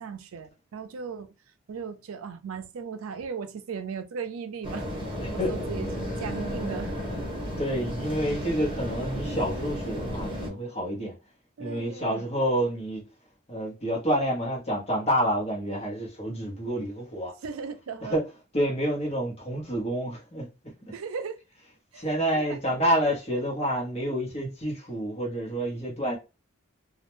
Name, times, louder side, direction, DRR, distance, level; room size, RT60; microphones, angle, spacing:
voice 1, 0.0-1.3 1.7-4.9 5.3-6.9 11.6-12.3 17.4-18.2 20.9-21.4 21.9-22.6, right 6 dB, 85° right, 0.4 m, -37 dB
sound 1, 4.6-10.5, equal, 25° right, 1.0 m, -33 dB
voice 2, 5.2-5.7 7.6-11.1 11.6-13.0 13.5-17.3 18.0-18.2 18.5-20.5 22.0-26.2, equal, 30° left, 0.9 m, -28 dB
2.3 x 2.1 x 2.9 m
head